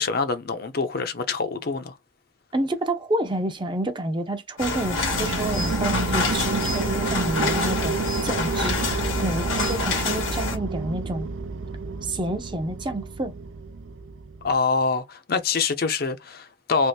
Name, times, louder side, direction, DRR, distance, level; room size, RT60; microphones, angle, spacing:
voice 1, 0.0-2.0 14.4-16.9, left 4 dB, 50° left, 0.6 m, -25 dB
voice 2, 2.5-7.9 8.2-11.3 12.0-13.3, right 1 dB, 25° right, 0.6 m, -29 dB
sound 1, 4.6-10.6, left 3 dB, 85° left, 1.6 m, -27 dB
sound 2, 4.6-14.6, right 3 dB, 80° right, 0.5 m, -30 dB
3.5 x 2.9 x 2.8 m
head